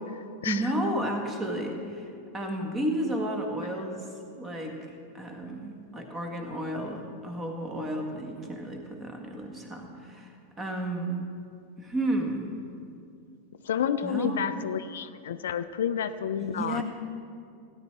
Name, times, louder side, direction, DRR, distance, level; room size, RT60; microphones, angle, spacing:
voice 1, 0.4-4.1 4.4-4.8 5.1-11.2 11.8-12.5 14.0-14.6 16.5-16.8, right 1 dB, 20° right, 3 dB, 1.6 m, -32 dB
voice 2, 13.6-16.8, left 8 dB, 60° left, 12 dB, 0.4 m, -30 dB
17.0 x 9.8 x 3.3 m, 2.4 s
figure-of-eight pair, 90°, 0 cm